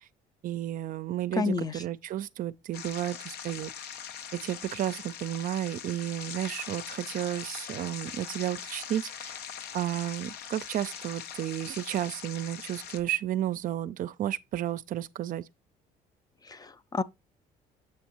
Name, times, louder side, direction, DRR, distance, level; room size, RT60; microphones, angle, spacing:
voice 1, 0.4-3.7 4.3-9.4 9.7-15.4, right 12 dB, 55° right, 0.4 m, -32 dB
voice 2, 1.4-1.8 16.5-17.0, left 4 dB, 25° left, 0.4 m, -30 dB
sound 1, 2.7-13.0, left 8 dB, 75° left, 0.7 m, -41 dB
7.6 x 6.2 x 3.0 m
cardioid pair, 110°, 17 cm